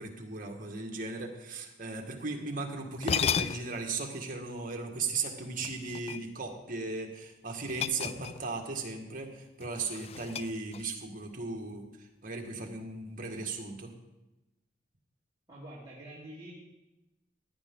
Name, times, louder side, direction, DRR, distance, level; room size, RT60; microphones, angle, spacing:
voice 1, 0.0-13.9, right 3 dB, 50° right, 2 dB, 1.9 m, -37 dB
sound 1, 2.6-2.7 3.0-3.9 5.6-6.5 7.7-8.6 8.9-9.1 9.6-11.0, left 7 dB, 35° left, 0.3 m, -34 dB
voice 2, 15.5-16.5, right 1 dB, 20° right, -9 dB, 2.9 m, -46 dB
16.5 x 10.5 x 3.9 m, 1.0 s
head